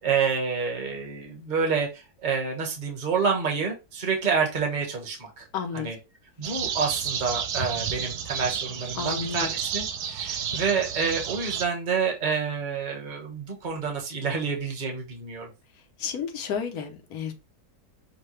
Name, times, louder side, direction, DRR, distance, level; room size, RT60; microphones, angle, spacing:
voice 1, 0.0-5.4 5.7-6.0 6.4-15.5, right 5 dB, 35° right, 1.2 m, -28 dB
voice 2, 5.5-5.9 9.0-9.5 16.0-17.3, left 6 dB, 75° left, 1.3 m, -31 dB
sound 1, 6.4-11.6, right 8 dB, 85° right, 1.2 m, -31 dB
6.5 x 2.2 x 3.1 m
omnidirectional pair, 1.7 m